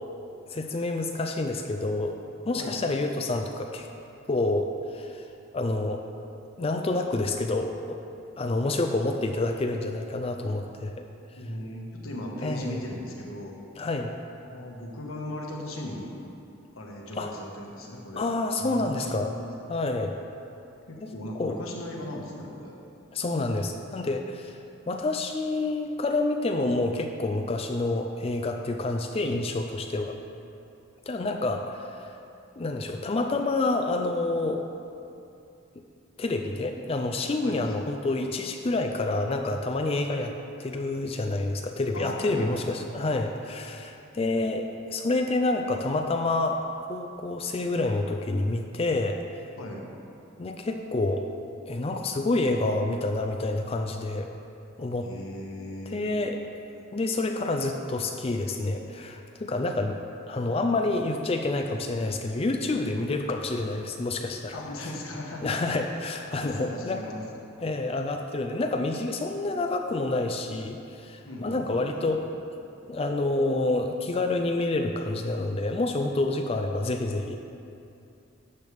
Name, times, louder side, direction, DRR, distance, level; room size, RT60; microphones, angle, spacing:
voice 1, 0.5-2.2 2.4-3.9 4.3-5.2 5.5-6.0 6.6-8.0 8.4-11.0 12.4-12.8 13.8-14.1 17.2-17.3 18.2-19.4 19.7-20.2 21.0-21.1 21.4-21.6 23.1-24.6 24.9-30.1 31.1-32.1 32.6-34.6 36.2-40.3 40.6-49.2 50.4-51.2 51.7-54.3 54.8-55.1 55.9-56.4 56.9-60.0 60.3-64.6 65.4-67.0 67.6-72.2 72.9-77.4, left 2 dB, 30° left, 4 dB, 0.4 m, -28 dB
voice 2, 11.3-13.6 14.4-16.1 16.7-18.3 18.6-19.6 20.9-22.8 37.4-37.7 41.9-42.9 49.6-49.9 55.0-56.0 64.5-65.6 65.9-66.1 66.4-67.2 71.2-72.0, left 1 dB, 85° left, -1 dB, 1.6 m, -38 dB
12.0 x 8.1 x 3.5 m, 2.7 s
head